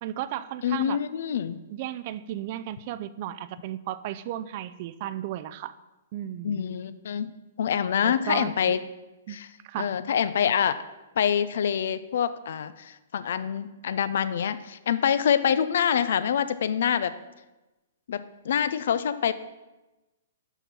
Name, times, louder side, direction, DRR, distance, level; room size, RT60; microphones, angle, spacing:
voice 1, 0.0-1.0 1.7-5.7 6.1-6.6 8.0-8.8 9.3-9.4 9.6-9.9, right 12 dB, 45° right, 14 dB, 0.4 m, -34 dB
voice 2, 0.6-1.6 6.4-7.3 7.6-8.8 9.3-9.5 9.8-10.8 11.2-17.1 18.1-19.3, left 8 dB, 65° left, 14 dB, 0.4 m, -26 dB
7.0 x 5.9 x 5.4 m, 1.1 s
hypercardioid pair, 120°, 0 cm